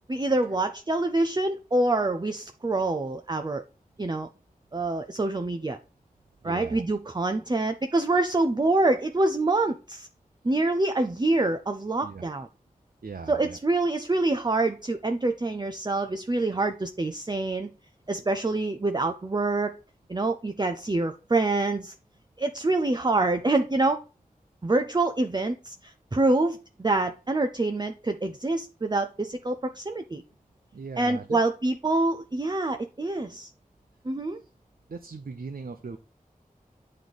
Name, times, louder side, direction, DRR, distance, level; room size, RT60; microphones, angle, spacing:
voice 1, 0.1-3.6 4.0-4.3 4.7-5.8 6.4-10.1 10.4-12.5 13.3-17.7 18.1-19.7 20.1-21.9 22.4-24.0 24.6-30.2 31.0-33.5 34.1-34.4, right 2 dB, 30° right, 0.5 m, -26 dB
voice 2, 6.4-6.9 12.0-12.2 13.0-13.6 30.7-31.4 34.4-34.5 34.9-36.0, right 4 dB, 85° right, 0.5 m, -39 dB
8.9 x 3.2 x 4.0 m
wide cardioid pair, 40°, 15 cm